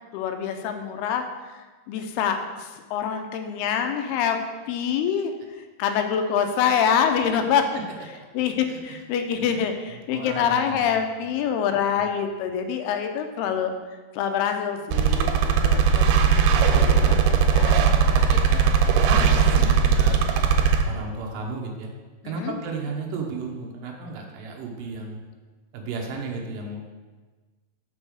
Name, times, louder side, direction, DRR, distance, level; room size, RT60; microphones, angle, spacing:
voice 1, 0.1-1.2 1.9-4.4 4.7-5.3 5.8-7.7 8.3-13.7 14.1-16.1 16.4-18.2 22.2-22.6, left 8 dB, 85° left, 6 dB, 2.7 m, -26 dB
voice 2, 8.7-9.0 9.4-9.5 9.9-10.8 11.9-12.0 16.0-16.1 18.1-20.2 20.8-21.9 22.2-25.2 25.7-26.9, right 4 dB, 70° right, 0 dB, 2.5 m, -34 dB
sound 1, 14.9-20.8, right 6 dB, 90° right, 2.6 m, -19 dB
6.1 x 5.4 x 6.3 m, 1.3 s
omnidirectional pair, 4.5 m